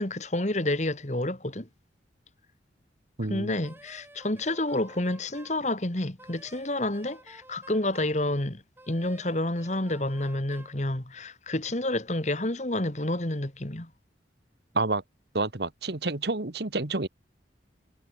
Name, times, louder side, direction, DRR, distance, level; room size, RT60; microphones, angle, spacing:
voice 1, 0.0-1.7 3.3-13.9, left 1 dB, 40° left, 2.1 m, -29 dB
voice 2, 3.2-3.5 14.7-15.0 15.3-17.1, right 3 dB, 60° right, 1.6 m, -29 dB
Wind instrument woodwind instrument, 3.6-5.6 6.2-8.2 8.8-10.8, right 1 dB, 10° right, 6.8 m, -52 dB
head